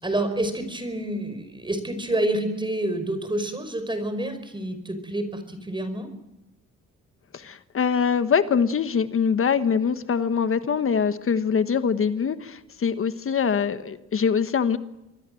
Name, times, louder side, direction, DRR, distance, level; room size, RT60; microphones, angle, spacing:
voice 1, 0.0-6.1, right 1 dB, 15° right, 9 dB, 4.9 m, -28 dB
voice 2, 7.3-14.8, left 6 dB, 45° left, 11 dB, 1.4 m, -23 dB
26.0 x 22.5 x 7.8 m, 0.95 s
cardioid pair, 90°, 30 cm